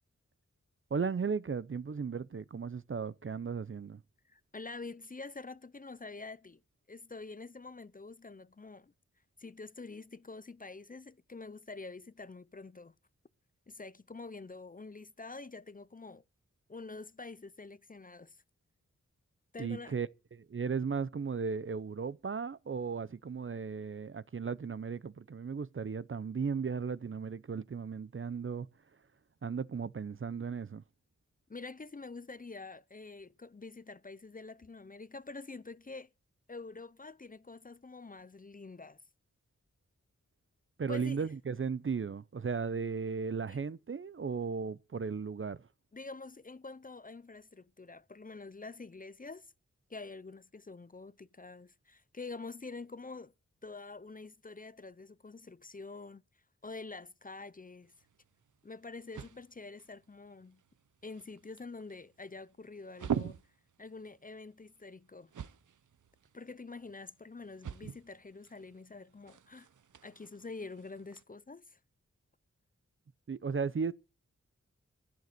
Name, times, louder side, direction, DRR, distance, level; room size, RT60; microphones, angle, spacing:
voice 1, 0.9-4.0 19.6-28.7 29.4-30.8 40.8-45.7 73.3-73.9, right 5 dB, 45° right, 0.6 m, -36 dB
voice 2, 4.3-6.6 6.9-8.9 9.4-12.9 13.7-16.2 16.7-18.4 19.5-20.0 31.5-36.1 36.5-39.0 40.9-41.3 43.5-43.6 45.9-49.5 49.9-53.3 53.6-56.2 56.6-57.9 58.6-60.6 61.0-63.4 63.8-65.3 66.3-69.7 70.0-71.8, left 3 dB, 30° left, 0.6 m, -46 dB
sound 1, 57.8-71.2, right 8 dB, 85° right, 0.9 m, -45 dB
12.0 x 11.0 x 6.8 m
wide cardioid pair, 60°, 30 cm